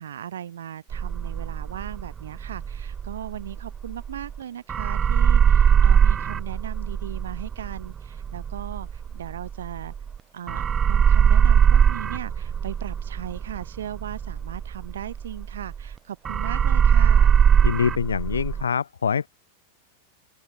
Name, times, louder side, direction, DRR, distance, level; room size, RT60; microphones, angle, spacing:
voice 1, 0.0-9.9 10.3-17.3, right 10 dB, 65° right, 1.3 m, -37 dB
sound 1, 0.9-4.4 4.7-10.2 10.5-15.9 16.2-18.6, right 7 dB, 20° right, 0.6 m, -21 dB
voice 2, 17.6-19.3, left 6 dB, 70° left, 1.8 m, -24 dB
open air
figure-of-eight pair, 90°, 0 cm